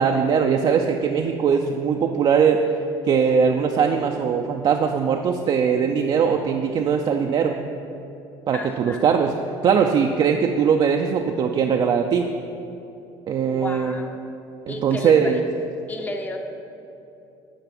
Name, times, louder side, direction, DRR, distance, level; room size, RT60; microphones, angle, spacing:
voice 1, 0.0-2.6 3.0-7.6 8.5-9.3 9.6-12.3 13.3-14.0 14.7-15.4, right 6 dB, 45° right, 3 dB, 0.5 m, -20 dB
voice 2, 8.5-9.1 13.4-14.2 14.7-15.4 15.9-16.4, left 2 dB, 15° left, 3 dB, 0.7 m, -33 dB
9.0 x 4.7 x 5.9 m, 2.8 s
supercardioid pair, 100°, 11 cm